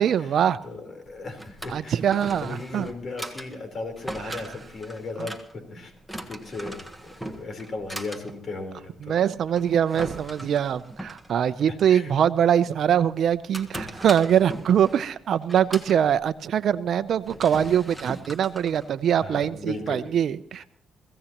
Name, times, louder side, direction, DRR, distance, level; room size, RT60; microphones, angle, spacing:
voice 1, 0.0-0.6 1.7-2.9 4.2-4.5 5.2-5.3 9.0-20.6, right 9 dB, 65° right, 14 dB, 0.6 m, -23 dB
voice 2, 0.6-5.9 6.3-6.8 7.0-9.1 10.4-10.5 11.8-12.1 19.2-20.0, left 3 dB, 45° left, 5 dB, 4.0 m, -36 dB
Drawer open or close, 1.0-19.6, right 1 dB, ahead, 1.5 m, -40 dB
22.5 x 16.0 x 3.0 m, 0.62 s
cardioid pair, 90°, 0 cm